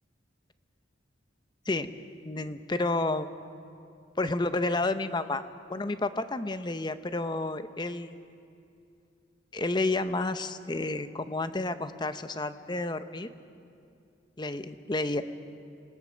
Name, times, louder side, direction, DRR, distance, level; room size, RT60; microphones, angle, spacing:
voice 1, 2.2-3.3 4.2-5.4 5.7-8.1 9.5-13.3 14.4-15.2, left 2 dB, 25° left, 11 dB, 0.8 m, -30 dB
27.5 x 19.0 x 6.4 m, 2.5 s
head